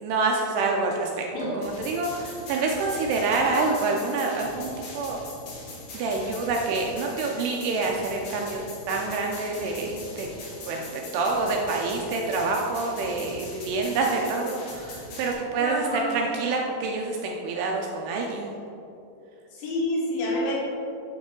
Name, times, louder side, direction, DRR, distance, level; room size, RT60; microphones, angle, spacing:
voice 1, 0.0-1.3 1.5-5.2 5.9-8.6 8.9-10.3 10.7-18.5, right 3 dB, 80° right, 0 dB, 2.5 m, -27 dB
sound 1, 1.6-15.3, left 2 dB, 60° left, 2.2 m, -41 dB
voice 2, 15.6-16.5 19.5-20.5, left 1 dB, 75° left, -6 dB, 4.0 m, -28 dB
7.6 x 6.3 x 3.7 m, 2.8 s
omnidirectional pair, 5.2 m